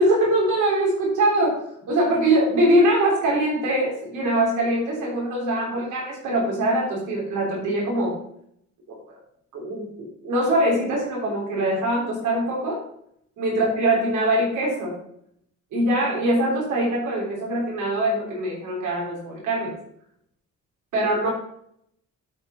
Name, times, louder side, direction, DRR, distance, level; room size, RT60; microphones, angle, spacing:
voice 1, 0.0-1.6 1.9-8.2 8.9-9.0 9.5-12.8 13.4-15.0 15.7-19.7 20.9-21.3, right 1 dB, 80° right, -3 dB, 3.5 m, -22 dB
8.8 x 5.7 x 5.7 m, 0.70 s
cardioid pair, 90°, 30 cm